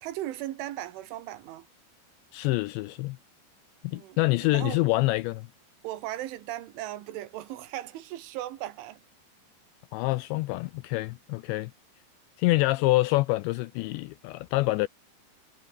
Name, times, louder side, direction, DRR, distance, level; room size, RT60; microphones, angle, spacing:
voice 1, 0.0-1.7 3.9-4.9 5.8-9.0, right 14 dB, 75° right, 4.0 m, -37 dB
voice 2, 2.3-3.2 3.8-5.5 9.9-11.7 12.4-14.9, left 20 dB, 85° left, 2.6 m, -26 dB
omnidirectional pair, 5.6 m